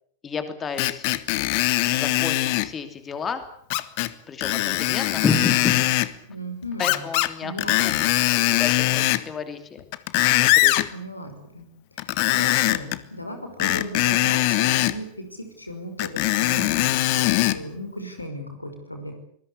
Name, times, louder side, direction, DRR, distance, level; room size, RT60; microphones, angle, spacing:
voice 1, 0.2-1.1 1.9-3.4 4.3-5.8 6.8-7.9 8.3-9.8 10.1-10.8, left 5 dB, 20° left, 9 dB, 2.9 m, -30 dB
Screech, 0.8-2.7 3.7-4.1 4.4-6.1 6.8-7.3 7.6-9.3 9.8-10.9 12.0-13.0 13.6-15.0 16.0-17.6 18.2-18.3, left 18 dB, 45° left, 1.4 m, -21 dB
voice 2, 6.3-7.0 7.4-8.1 10.9-11.7 12.3-19.1, equal, 85° left, 6 dB, 5.7 m, -36 dB
25.5 x 20.5 x 8.4 m, 0.63 s
figure-of-eight pair, 90°, 0 cm